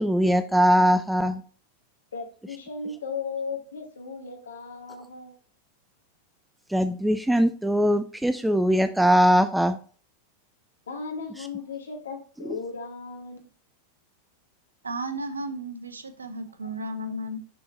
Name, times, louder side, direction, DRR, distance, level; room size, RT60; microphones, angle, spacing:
voice 1, 0.0-1.4 6.7-9.8, equal, 5° right, 11 dB, 0.3 m, -21 dB
voice 2, 2.1-5.3 10.9-13.4 16.6-16.7, left 4 dB, 70° left, 3 dB, 1.1 m, -36 dB
voice 3, 14.8-17.4, right 1 dB, 75° right, 10 dB, 0.6 m, -34 dB
6.6 x 3.7 x 4.1 m, 0.41 s
figure-of-eight pair, 90°, 0 cm